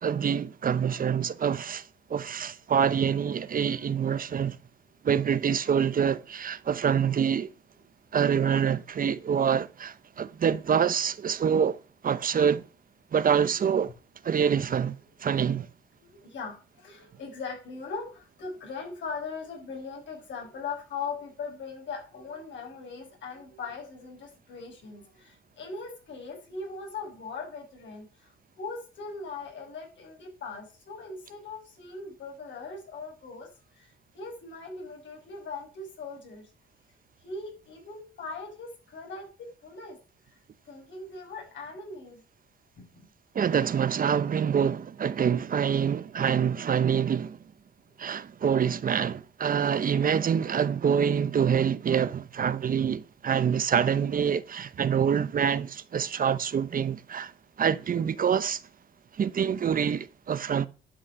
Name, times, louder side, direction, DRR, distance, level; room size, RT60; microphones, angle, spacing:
voice 1, 0.0-4.6 5.0-7.5 8.1-12.6 13.1-13.9 14.2-15.7 43.3-47.4 48.0-57.3 57.6-58.6 59.1-60.7, right 7 dB, 45° right, 0.8 m, -26 dB
voice 2, 16.0-33.5 33.8-36.5 37.2-40.0 40.7-42.2 42.8-43.0, left 4 dB, 70° left, 6.2 m, -40 dB
11.0 x 6.3 x 7.4 m
cardioid pair, 90°, 20 cm